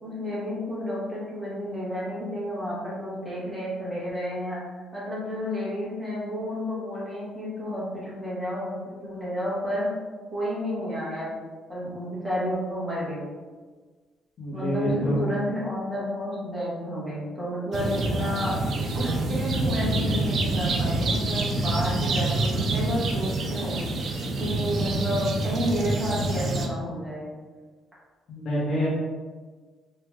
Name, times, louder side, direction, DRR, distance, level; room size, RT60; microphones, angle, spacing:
voice 1, 0.0-4.6 4.9-9.9 10.3-11.4 11.7-13.2 14.5-18.5 18.9-23.8 24.4-27.3, equal, ahead, -10 dB, 1.0 m, -31 dB
voice 2, 14.4-15.2 28.3-28.9, equal, 45° left, -8 dB, 0.6 m, -26 dB
sound 1, 17.7-26.7, right 2 dB, 45° right, 0.3 m, -27 dB
3.0 x 2.7 x 2.2 m, 1.4 s
cardioid pair, 160°, 0 cm